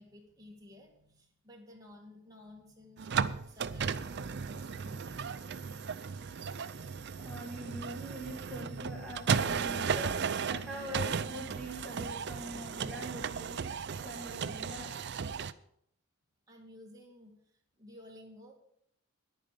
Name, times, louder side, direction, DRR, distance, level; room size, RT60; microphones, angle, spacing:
voice 1, 0.0-5.6 16.5-18.5, left 1 dB, 15° right, -1 dB, 2.2 m, -54 dB
sound 1, 3.0-15.5, right 6 dB, 50° right, 0.5 m, -35 dB
voice 2, 7.2-13.8 14.0-15.1, equal, ahead, -3 dB, 1.6 m, -43 dB
10.5 x 9.2 x 6.8 m, 0.68 s
head